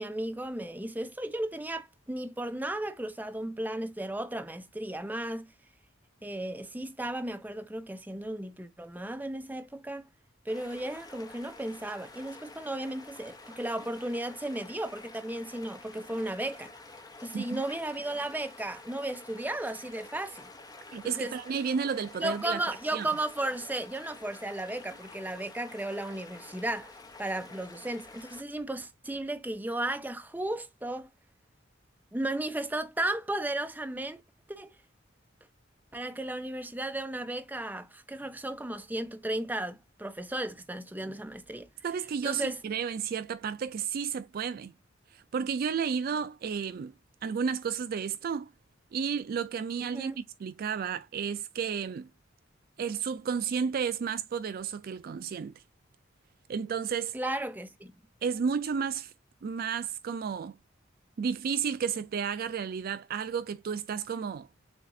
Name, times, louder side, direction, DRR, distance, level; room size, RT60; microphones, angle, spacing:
voice 1, 0.0-5.5 6.2-10.1 10.5-16.7 17.2-20.5 21.0-21.3 22.2-26.9 27.2-31.1 32.1-34.2 34.5-34.7 35.9-41.7 42.2-42.6 49.9-50.2 57.1-57.9, right 1 dB, 10° right, 0.6 m, -35 dB
sound 1, 10.5-28.6, left 3 dB, 20° left, 0.9 m, -49 dB
voice 2, 20.9-22.6 22.9-23.1 41.8-44.7 45.1-46.9 47.2-48.5 48.9-52.1 52.8-55.5 56.5-57.2 58.2-59.1 59.4-60.5 61.2-64.5, right 6 dB, 50° right, 0.3 m, -32 dB
7.0 x 2.4 x 2.6 m
head